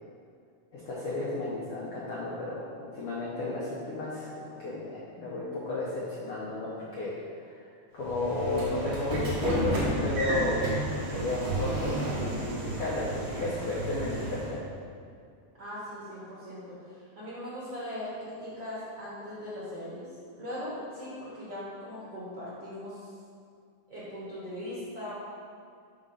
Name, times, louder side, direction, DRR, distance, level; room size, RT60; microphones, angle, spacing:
voice 1, 0.7-7.1 7.4-7.6 7.9-10.7 11.1-14.6, left 2 dB, 75° left, -7 dB, 1.3 m, -33 dB
Train / Sliding door, 8.0-14.6, right 1 dB, 75° right, 1.0 m, -32 dB
voice 2, 15.5-20.1 20.4-23.1 23.9-25.1, left 1 dB, 50° right, -9 dB, 1.5 m, -39 dB
5.2 x 3.7 x 5.4 m, 2.3 s
omnidirectional pair, 3.6 m